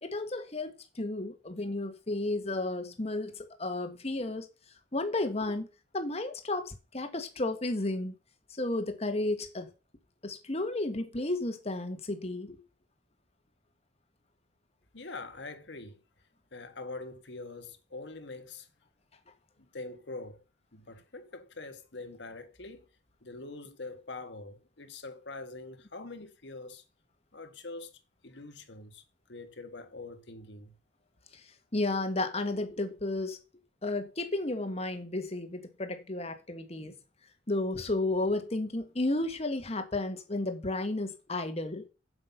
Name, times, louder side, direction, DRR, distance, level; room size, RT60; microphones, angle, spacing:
voice 1, 0.0-4.5 4.9-5.7 5.9-8.1 8.5-9.7 10.2-12.6 31.3-31.4 31.7-33.4 33.8-36.9 37.5-41.8, left 2 dB, 35° left, 1.6 m, -32 dB
voice 2, 14.9-16.0 16.5-18.7 19.6-20.4 20.7-22.9 23.2-26.8 27.3-30.8, left 3 dB, 60° left, 1.5 m, -44 dB
7.9 x 7.7 x 5.7 m
head